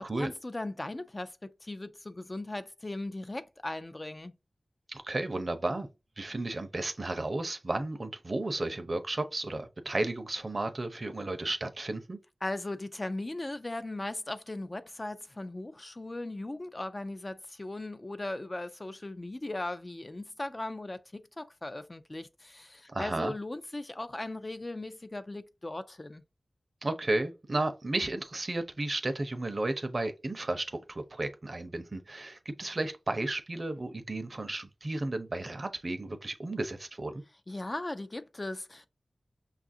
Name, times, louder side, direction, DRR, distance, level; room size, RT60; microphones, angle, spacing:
voice 1, 0.0-4.3 12.4-26.2 37.5-38.9, left 2 dB, 35° left, 0.4 m, -38 dB
voice 2, 4.9-5.9 6.2-12.2 22.9-23.3 26.8-37.2, right 2 dB, 50° right, 0.6 m, -33 dB
5.5 x 2.4 x 2.6 m
wide cardioid pair, 70°, 0 cm